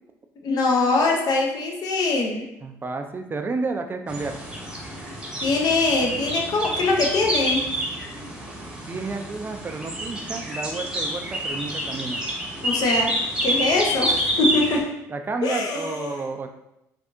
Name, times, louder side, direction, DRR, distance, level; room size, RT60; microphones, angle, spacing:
voice 1, 0.4-2.5 5.4-7.7 12.6-13.2 13.4-15.0 15.4-16.2, left 3 dB, 55° left, 1 dB, 0.7 m, -23 dB
voice 2, 2.6-4.4 8.9-12.2 15.1-16.5, right 3 dB, 25° right, 6 dB, 0.4 m, -31 dB
sound 1, 4.1-14.8, right 1 dB, 10° right, 0.9 m, -28 dB
3.4 x 2.6 x 2.6 m, 0.84 s
hypercardioid pair, 65°, 8 cm